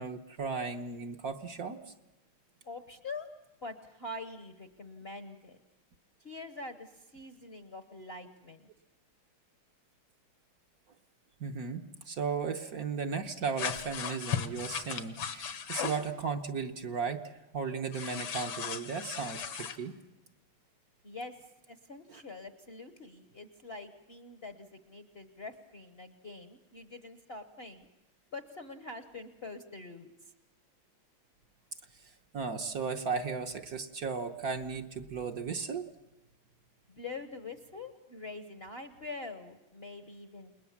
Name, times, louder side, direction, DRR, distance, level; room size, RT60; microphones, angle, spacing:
voice 1, 0.0-1.8 11.4-17.2 17.5-20.0 32.3-35.9, right 5 dB, 55° right, 5 dB, 1.3 m, -35 dB
voice 2, 2.6-3.3 3.6-5.6 6.2-8.7 21.0-27.9 28.3-30.3 36.9-40.5, left 3 dB, 40° left, 9 dB, 1.0 m, -45 dB
sound 1, 13.6-16.1 17.9-19.8, left 8 dB, 75° left, 2.0 m, -37 dB
29.0 x 20.0 x 7.2 m, 0.98 s
omnidirectional pair, 2.2 m